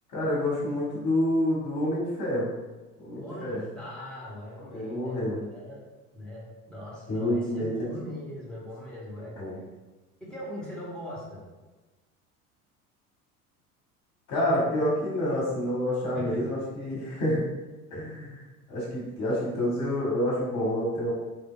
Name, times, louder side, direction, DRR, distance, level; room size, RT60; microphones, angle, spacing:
voice 1, 0.1-2.5 3.0-3.6 4.7-5.4 7.1-7.9 9.4-9.6 14.3-17.4 17.9-18.4 18.7-21.1, left 1 dB, 40° left, -5 dB, 1.2 m, -28 dB
voice 2, 3.2-5.8 6.1-9.4 10.2-11.4 16.1-16.5, equal, ahead, -7 dB, 1.2 m, -40 dB
3.3 x 2.7 x 2.2 m, 1.2 s
figure-of-eight pair, 70°, 44 cm